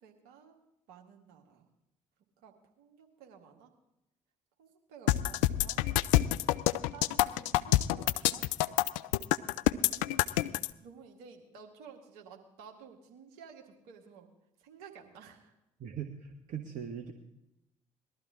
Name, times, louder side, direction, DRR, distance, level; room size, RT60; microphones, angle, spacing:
voice 1, 0.0-0.6 0.9-1.7 2.4-3.7 4.6-5.8 6.9-8.5 9.9-10.2 10.8-14.3 14.6-15.5, right 6 dB, 70° right, 3 dB, 1.8 m, -53 dB
sound 1, 5.1-10.7, left 15 dB, 70° left, 0.4 m, -27 dB
voice 2, 15.8-17.1, right 8 dB, 50° right, 5 dB, 1.1 m, -40 dB
20.0 x 12.5 x 3.7 m, 0.86 s
figure-of-eight pair, 45°, 17 cm